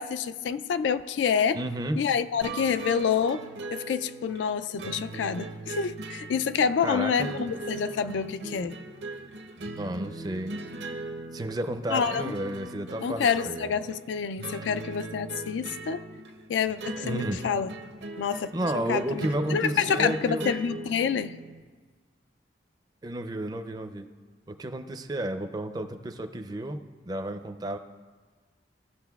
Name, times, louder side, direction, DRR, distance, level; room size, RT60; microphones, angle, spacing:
voice 1, 0.0-1.6 2.0-8.8 11.9-12.3 13.0-16.0 16.5-17.7 18.2-18.5 18.9-21.4, left 7 dB, 85° left, 12 dB, 0.3 m, -28 dB
voice 2, 1.5-2.0 6.8-7.3 9.8-10.5 11.3-13.7 17.0-17.4 18.5-20.4 23.0-24.1 24.5-26.8 27.1-27.8, right 1 dB, 20° right, 8 dB, 0.4 m, -32 dB
sound 1, 2.4-21.6, right 2 dB, 70° right, 0.8 m, -39 dB
15.5 x 6.3 x 2.3 m, 1.4 s
head